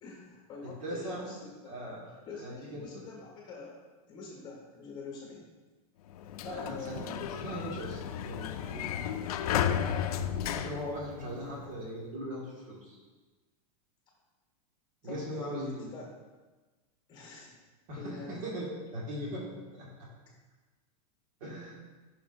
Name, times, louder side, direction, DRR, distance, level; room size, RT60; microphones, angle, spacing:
voice 1, 0.0-1.9 2.3-3.8 4.1-5.5 6.4-7.3 11.3-11.7 15.0-16.1 17.1-17.6 18.0-18.3, left 3 dB, 20° left, -1 dB, 1.5 m, -45 dB
voice 2, 0.6-1.3 1.6-2.1 2.4-3.0 6.4-8.9 10.5-13.0 15.0-15.9 17.9-19.4 19.7-19.9 21.4-21.8, equal, 60° right, -4 dB, 2.0 m, -39 dB
Sliding door, 6.1-11.7, left 9 dB, 70° left, 0.5 m, -34 dB
10.0 x 5.9 x 2.6 m, 1.3 s
supercardioid pair, 160°, 20 cm